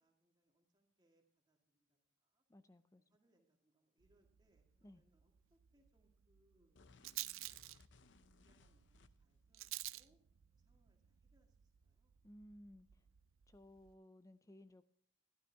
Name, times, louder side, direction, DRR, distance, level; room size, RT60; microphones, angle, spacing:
voice 1, 0.0-2.4 3.0-7.2 8.1-10.2 10.5-12.2, right 1 dB, 20° right, 1 dB, 2.0 m, -79 dB
voice 2, 2.5-3.0 4.8-5.0 12.2-13.0 13.5-14.9, equal, 15° left, 13 dB, 0.4 m, -59 dB
Rattle, 4.0-13.9, right 17 dB, 90° right, 0.4 m, -53 dB
sound 1, 6.7-9.4, left 4 dB, 65° left, 0.6 m, -66 dB
12.0 x 12.0 x 3.4 m, 0.67 s
head